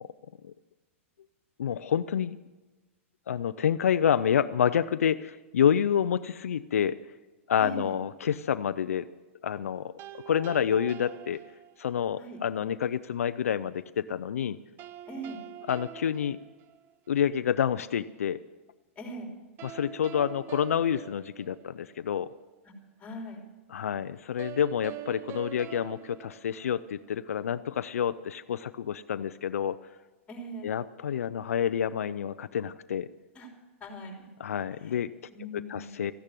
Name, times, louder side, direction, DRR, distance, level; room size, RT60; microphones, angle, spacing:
voice 1, 1.6-2.4 3.3-7.0 7.5-9.1 9.4-11.4 11.8-14.6 15.7-16.4 17.1-18.4 19.6-22.3 23.7-29.8 30.6-33.1 34.4-35.1 35.5-36.1, left 8 dB, 85° left, 13 dB, 0.5 m, -28 dB
voice 2, 7.6-7.9 12.1-12.4 15.0-15.4 18.9-19.3 22.6-22.7 23.0-23.4 30.3-30.7 33.3-33.5 33.8-34.3 34.7-35.0 35.3-36.0, right 1 dB, 15° left, 2 dB, 3.1 m, -40 dB
sound 1, 10.0-12.1 14.8-17.2 19.6-22.1 24.4-27.2, right 11 dB, 30° right, 0.4 m, -45 dB
14.0 x 10.5 x 7.5 m, 1.2 s
hypercardioid pair, 130°, 8 cm